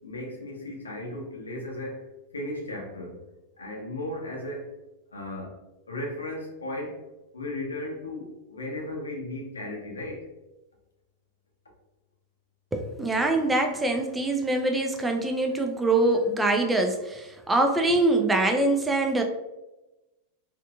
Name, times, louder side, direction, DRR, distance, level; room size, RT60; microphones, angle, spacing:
voice 1, 0.0-2.1 2.3-3.3 3.6-4.7 5.1-7.0 7.3-10.3, left 1 dB, 75° left, 0 dB, 0.7 m, -36 dB
voice 2, 12.7-19.2, right 2 dB, 10° right, 3 dB, 0.4 m, -24 dB
3.4 x 2.6 x 2.3 m, 1.0 s
figure-of-eight pair, 90°, 0 cm